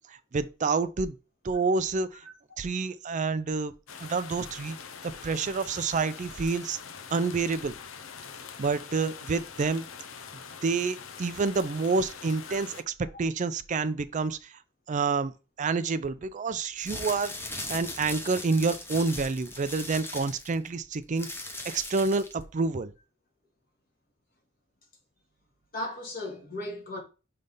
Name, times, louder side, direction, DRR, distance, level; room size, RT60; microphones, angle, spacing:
voice 1, 0.1-1.2 1.4-2.2 2.6-3.7 4.0-4.8 5.2-6.8 7.1-7.7 8.6-9.9 10.6-12.9 13.2-14.5 14.9-15.3 15.6-17.3 17.7-21.3 21.6-22.9, right 4 dB, 40° right, 0.4 m, -28 dB
sound 1, 3.9-12.8, left 6 dB, 90° left, 0.6 m, -44 dB
sound 2, 16.7-22.4, left 2 dB, 10° left, 0.9 m, -39 dB
voice 2, 25.7-27.0, left 1 dB, 45° left, 2.1 m, -36 dB
5.3 x 3.3 x 5.3 m
head